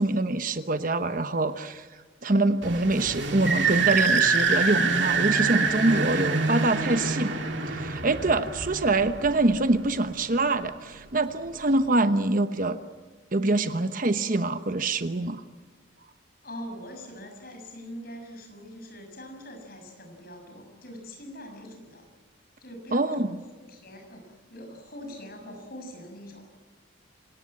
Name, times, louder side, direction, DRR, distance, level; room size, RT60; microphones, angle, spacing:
voice 1, 0.0-1.9 2.2-7.4 7.7-12.8 13.3-15.4 22.9-23.4, right 2 dB, 45° right, 10 dB, 1.0 m, -25 dB
sound 1, 2.6-9.9, right 4 dB, 65° right, 2.6 m, -26 dB
voice 2, 16.4-22.1 22.6-23.3 23.7-26.5, equal, 50° left, 4 dB, 6.6 m, -43 dB
27.5 x 18.0 x 8.7 m, 1.4 s
head